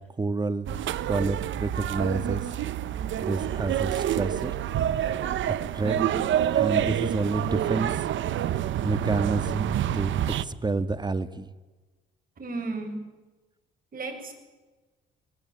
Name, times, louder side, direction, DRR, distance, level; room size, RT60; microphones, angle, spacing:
voice 1, 0.2-0.7 1.1-2.4 3.2-4.5 5.5-5.9 6.6-7.9 8.8-11.5, right 3 dB, 20° right, 11 dB, 1.8 m, -29 dB
sound 1, 0.7-10.4, right 11 dB, 75° right, 1.1 m, -27 dB
voice 2, 5.8-6.3 12.4-13.0 13.9-14.3, right 3 dB, 45° right, 4 dB, 8.0 m, -34 dB
26.5 x 21.5 x 9.0 m, 1.2 s
cardioid pair, 90°, 20 cm